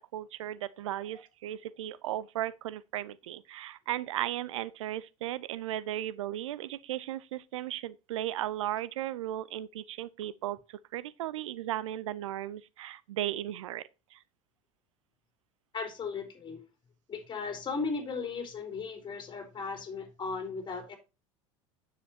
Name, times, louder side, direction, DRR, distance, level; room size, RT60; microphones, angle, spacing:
voice 1, 0.1-10.6 10.9-14.2, right 13 dB, 70° right, 0.6 m, -36 dB
voice 2, 15.7-16.6 17.1-21.0, left 4 dB, 30° left, 3.5 m, -36 dB
9.8 x 7.8 x 2.8 m
figure-of-eight pair, 75°, 17 cm